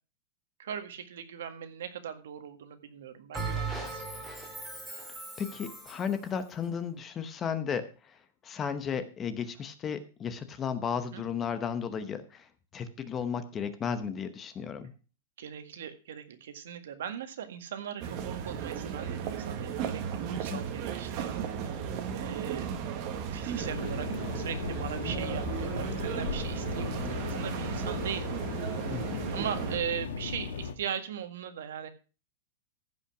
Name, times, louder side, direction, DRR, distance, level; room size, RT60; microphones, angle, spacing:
voice 1, 0.6-4.0 6.7-6.8 11.0-11.2 15.4-21.8 22.1-22.7 23.3-28.4 29.3-31.9, right 8 dB, 75° right, 9 dB, 1.8 m, -39 dB
Bell, 3.3-6.1, right 3 dB, 5° right, 2.2 m, -37 dB
voice 2, 5.4-7.9 8.4-12.4 12.7-14.9 20.5-20.6 28.9-29.3, left 7 dB, 15° left, 11 dB, 0.8 m, -34 dB
sound 1, 18.0-29.8, right 7 dB, 35° right, 1.5 m, -35 dB
sound 2, 23.6-30.7, left 6 dB, 90° left, 1.6 m, -37 dB
15.0 x 5.7 x 5.9 m, 0.35 s
supercardioid pair, 170°, 0 cm